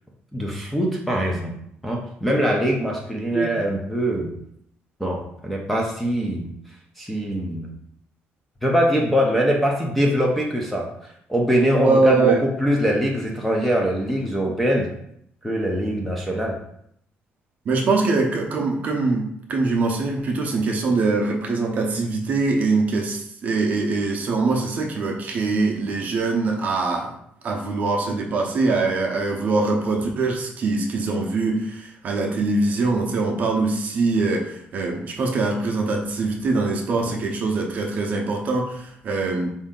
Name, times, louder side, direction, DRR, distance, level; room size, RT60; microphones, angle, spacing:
voice 1, 0.3-1.5 1.8-4.3 5.0-6.5 7.0-7.7 8.6-14.9 15.4-16.6, equal, ahead, -1 dB, 0.5 m, -23 dB
voice 2, 11.7-12.4 17.7-27.1 27.4-39.5, right 3 dB, 40° right, 1 dB, 0.6 m, -23 dB
4.3 x 2.7 x 3.7 m, 0.70 s
cardioid pair, 180°, 4 cm